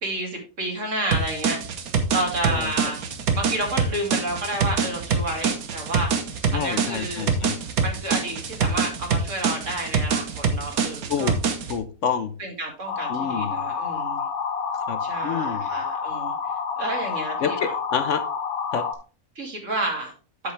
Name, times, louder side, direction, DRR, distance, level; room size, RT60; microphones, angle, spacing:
voice 1, 0.0-1.6 2.1-3.0 3.3-6.1 6.5-7.3 7.8-11.4 12.4-14.3 15.0-16.3 16.8-17.7 19.4-20.1, right 1 dB, 55° right, 1 dB, 2.7 m, -30 dB
sound 1, 1.1-11.8, right 5 dB, 75° right, 1.5 m, -25 dB
voice 2, 6.5-7.6 11.1-11.4 11.7-12.3 13.1-13.6 14.9-15.7 17.4-18.2 18.7-18.8, left 7 dB, 60° left, 10 dB, 1.0 m, -28 dB
sound 2, 12.9-18.9, left 6 dB, 80° left, 1.6 m, -29 dB
8.8 x 7.2 x 3.3 m, 0.35 s
omnidirectional pair, 1.5 m